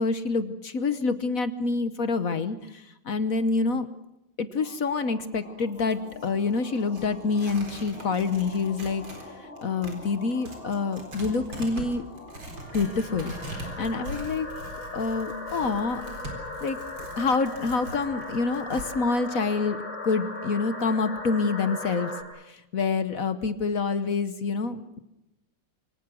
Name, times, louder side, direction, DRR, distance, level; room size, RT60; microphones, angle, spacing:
voice 1, 0.0-3.9 4.4-9.0 9.4-12.1 12.7-14.5 14.9-16.0 16.6-16.8 17.2-19.8 20.0-22.1 22.5-25.0, left 4 dB, 50° left, 11 dB, 1.2 m, -27 dB
sound 1, 4.6-22.2, left 2 dB, 80° left, 5.2 m, -40 dB
Tearing, 5.6-9.3 9.6-18.9, right 2 dB, 60° right, 4.8 m, -42 dB
28.0 x 24.0 x 6.3 m, 0.91 s
omnidirectional pair, 2.4 m